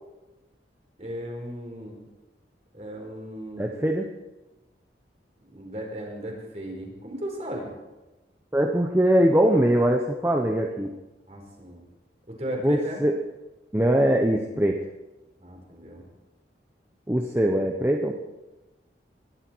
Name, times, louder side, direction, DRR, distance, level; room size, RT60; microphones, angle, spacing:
voice 1, 1.0-2.0 2.7-3.8 5.4-7.7 11.3-11.8 12.3-13.0 15.4-16.0, equal, 40° right, 0 dB, 4.8 m, -36 dB
voice 2, 3.6-4.1 8.5-10.9 12.6-13.1 13.7-14.8 17.1-18.1, right 1 dB, 15° right, 2 dB, 0.9 m, -22 dB
21.0 x 12.5 x 4.6 m, 1.1 s
head